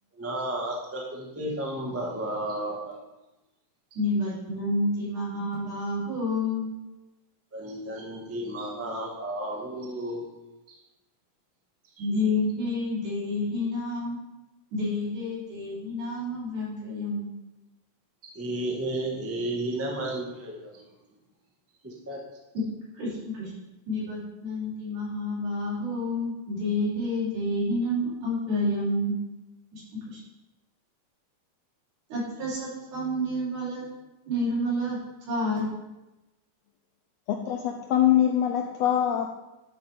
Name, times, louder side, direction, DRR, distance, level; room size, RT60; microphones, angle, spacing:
voice 1, 0.2-3.0 7.5-10.3 18.2-20.7 21.8-22.2, right 1 dB, 15° right, -2 dB, 0.4 m, -32 dB
voice 2, 4.0-6.7 12.0-14.2 14.7-17.3 22.9-23.5 23.9-29.1 29.7-30.2 32.1-33.8 34.3-35.0 35.3-35.7, left 1 dB, 80° right, -8 dB, 5.2 m, -29 dB
voice 3, 37.3-39.3, left 10 dB, 85° left, 4 dB, 1.5 m, -23 dB
11.0 x 7.6 x 3.6 m, 1.0 s
omnidirectional pair, 3.5 m